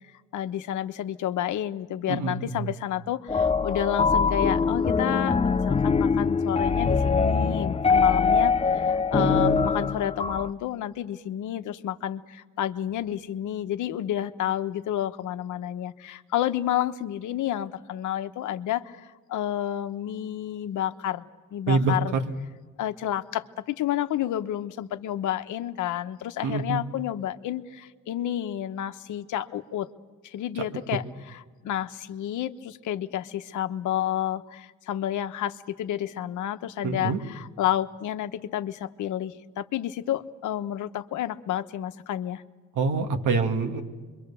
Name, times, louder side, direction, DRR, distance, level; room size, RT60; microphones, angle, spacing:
voice 1, 0.3-21.2 21.5-22.2 22.8-29.9 30.2-42.4, left 11 dB, 80° left, 9 dB, 1.1 m, -30 dB
voice 2, 2.1-2.7 9.2-9.8 21.7-22.2 26.4-26.8 36.8-37.2 42.8-43.8, right 4 dB, 80° right, 5 dB, 2.3 m, -26 dB
sound 1, 3.3-10.5, left 5 dB, 20° left, 0.6 m, -23 dB
26.5 x 23.0 x 7.0 m, 1.4 s
cardioid pair, 90°, 30 cm